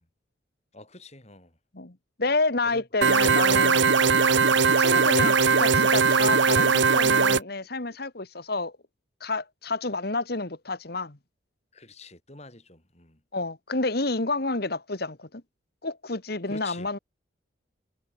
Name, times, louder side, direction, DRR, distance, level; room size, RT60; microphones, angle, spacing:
voice 1, 0.7-1.5 2.6-2.8 11.7-13.2 16.5-16.9, left 2 dB, 35° left, 6.3 m, -46 dB
voice 2, 1.7-3.8 4.8-8.7 9.2-11.2 13.3-15.4 15.8-17.0, left 3 dB, 55° left, 1.7 m, -29 dB
sound 1, 3.0-7.4, right 5 dB, 70° right, 1.1 m, -20 dB
head